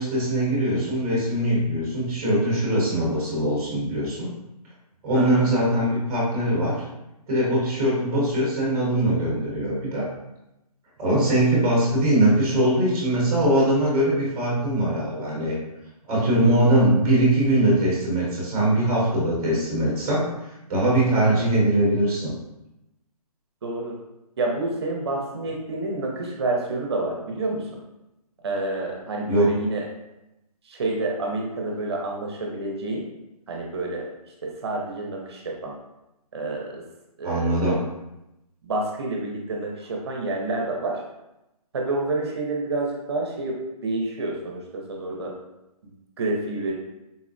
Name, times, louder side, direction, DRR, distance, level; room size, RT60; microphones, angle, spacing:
voice 1, 0.0-4.3 5.0-6.8 7.3-10.0 11.0-15.5 16.1-20.2 20.7-22.3 29.3-29.5 37.2-37.9, right 1 dB, 10° right, -5 dB, 0.8 m, -21 dB
voice 2, 5.1-5.5 21.1-21.4 23.6-24.0 24.4-27.7 28.4-29.8 30.7-33.1 33.5-34.1 34.4-35.7 36.3-36.8 37.2-37.8 38.6-41.0 41.7-45.3 46.2-46.8, right 2 dB, 40° right, 0 dB, 0.6 m, -28 dB
3.9 x 2.0 x 2.5 m, 0.91 s
hypercardioid pair, 165°, 20 cm